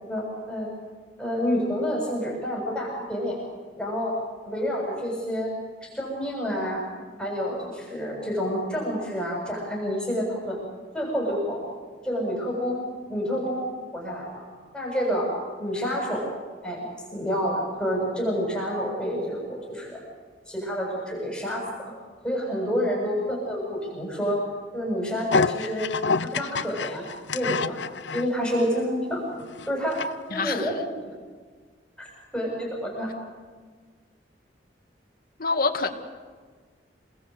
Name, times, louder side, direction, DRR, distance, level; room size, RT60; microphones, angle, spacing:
voice 1, 0.0-0.7 1.2-3.4 3.8-4.2 4.4-5.5 5.8-6.8 7.2-10.6 10.9-11.6 12.0-12.8 13.1-13.7 13.9-14.4 14.7-15.3 15.6-16.2 16.6-16.8 17.1-20.0 20.5-21.7 22.2-24.4 24.7-25.9 26.2-27.0 27.3-27.8 28.1-29.2 29.7-30.0 30.3-30.7 32.0-32.1 32.3-33.1, equal, 5° left, -3 dB, 7.5 m, -28 dB
sound 1, 25.3-28.3 28.8-28.9 29.4-30.1 30.4-30.5, left 4 dB, 75° left, 0.7 m, -27 dB
voice 2, 30.3-30.7 35.4-35.9, left 4 dB, 55° left, 4 dB, 2.2 m, -26 dB
29.0 x 20.5 x 8.2 m, 1.5 s
head